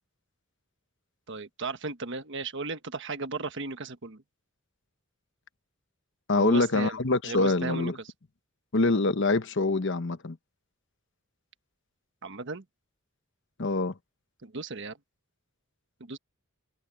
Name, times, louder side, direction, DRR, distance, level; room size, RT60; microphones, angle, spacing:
voice 1, 1.3-4.2 6.4-7.0 7.2-8.1 12.2-12.6 14.4-15.0 16.0-16.2, right 3 dB, 60° right, 1.3 m, -36 dB
voice 2, 6.3-8.0 8.7-10.4 13.6-13.9, left 2 dB, 60° left, 1.0 m, -25 dB
head